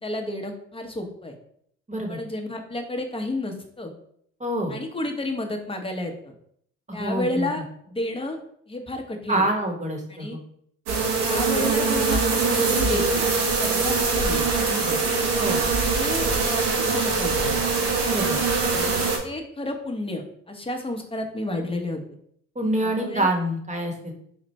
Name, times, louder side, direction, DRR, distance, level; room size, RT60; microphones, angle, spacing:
voice 1, 0.0-1.4 2.1-3.9 4.7-6.3 6.9-8.4 8.7-9.4 10.1-10.4 11.2-15.0 15.9-16.7 16.9-17.5 18.7-22.0 22.8-23.3, left 1 dB, 15° left, 3 dB, 0.8 m, -31 dB
voice 2, 1.9-2.2 4.4-4.8 6.9-7.5 9.3-10.4 15.4-15.6 18.1-18.4 22.5-24.1, right 1 dB, 15° right, 2 dB, 1.1 m, -26 dB
sound 1, 10.9-19.2, right 4 dB, 70° right, 1.0 m, -23 dB
4.2 x 2.4 x 3.1 m, 0.66 s
hypercardioid pair, 55°, 41 cm